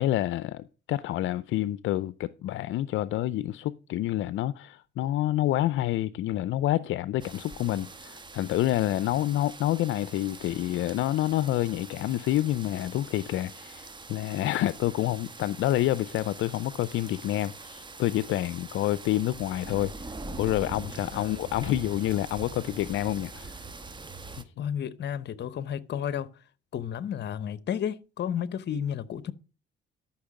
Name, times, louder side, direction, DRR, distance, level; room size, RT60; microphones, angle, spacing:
voice 1, 0.0-19.9 20.4-23.5, left 14 dB, 80° left, 0.5 m, -28 dB
sound 1, 7.2-24.4, right 3 dB, 25° right, 1.2 m, -43 dB
voice 2, 24.6-26.3 26.7-29.3, left 9 dB, 60° left, 0.9 m, -32 dB
12.5 x 5.9 x 4.8 m
cardioid pair, 90°, 20 cm